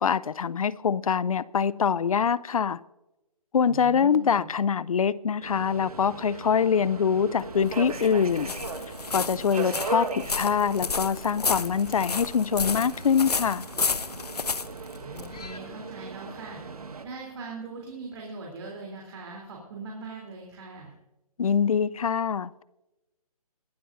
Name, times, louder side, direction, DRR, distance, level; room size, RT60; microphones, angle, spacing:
voice 1, 0.0-2.8 3.5-8.5 9.1-13.7 21.4-22.6, left 7 dB, 65° left, 20 dB, 0.6 m, -24 dB
voice 2, 3.7-4.5 9.5-9.8 15.0-16.6 17.0-20.9, right 3 dB, 45° right, -1 dB, 3.3 m, -41 dB
Subway metro underground, 5.4-17.0, right 4 dB, 70° right, 1.5 m, -38 dB
sound 1, 7.4-15.6, left 4 dB, 85° left, 0.9 m, -32 dB
21.5 x 12.0 x 2.6 m, 0.95 s
figure-of-eight pair, 145°, 20 cm